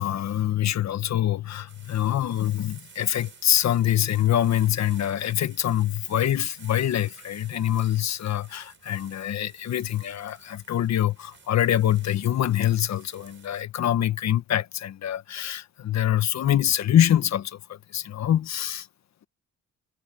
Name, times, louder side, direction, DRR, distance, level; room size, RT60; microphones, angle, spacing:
voice 1, 0.0-18.9, left 11 dB, 65° left, 1.5 m, -25 dB
sound 1, 1.7-13.6, right 6 dB, 40° right, 6.7 m, -52 dB
cardioid pair, 90°, 30 cm